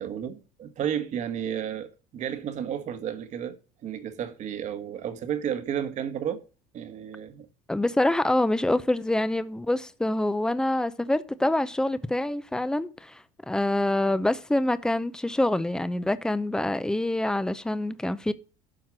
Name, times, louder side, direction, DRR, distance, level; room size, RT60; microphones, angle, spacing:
voice 1, 0.0-6.4 6.7-7.5, right 9 dB, 40° right, 1.4 m, -32 dB
voice 2, 7.7-18.3, left 1 dB, 5° left, 0.6 m, -26 dB
12.0 x 4.6 x 6.1 m
cardioid pair, 135°, 18 cm